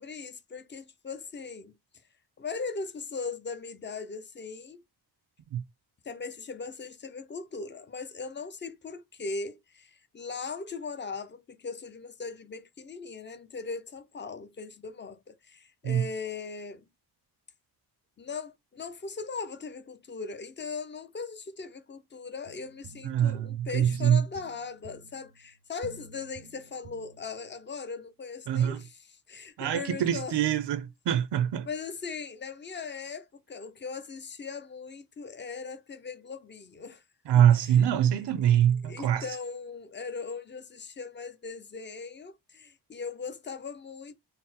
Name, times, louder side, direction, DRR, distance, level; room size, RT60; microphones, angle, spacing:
voice 1, 0.0-1.7 2.4-4.8 6.0-16.9 18.2-30.4 31.6-37.0 37.3-37.8 38.5-38.6 38.8-44.1, left 4 dB, 30° left, 0.4 m, -39 dB
sound 1, 22.5-27.7, right 5 dB, 45° right, 0.4 m, -51 dB
voice 2, 23.0-24.2 28.5-28.8 29.6-31.7 37.3-39.2, right 10 dB, 90° right, 0.6 m, -24 dB
4.0 x 2.0 x 4.0 m
wide cardioid pair, 175°, 40 cm